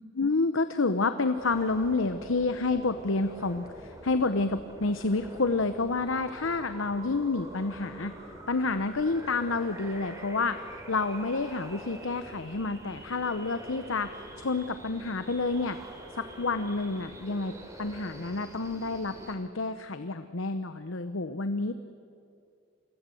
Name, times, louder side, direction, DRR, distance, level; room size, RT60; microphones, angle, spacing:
voice 1, 0.1-8.1 8.5-15.8 16.1-21.7, left 3 dB, 70° left, 10 dB, 0.9 m, -29 dB
sound 1, 1.3-19.3, right 1 dB, 15° right, 2.9 m, -45 dB
27.5 x 21.5 x 7.8 m, 2.4 s
head